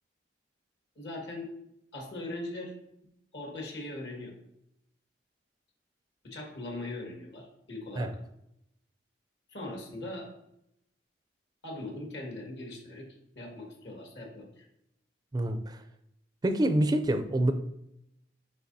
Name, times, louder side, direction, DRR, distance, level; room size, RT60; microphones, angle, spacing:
voice 1, 1.0-1.5 1.9-2.7 3.3-4.3 6.2-8.1 9.5-10.3 11.6-13.1 13.4-14.6, left 2 dB, 70° left, 0 dB, 1.8 m, -40 dB
voice 2, 15.3-15.8 16.4-17.5, right 1 dB, 25° right, 8 dB, 0.4 m, -26 dB
8.4 x 4.8 x 2.7 m, 0.80 s
head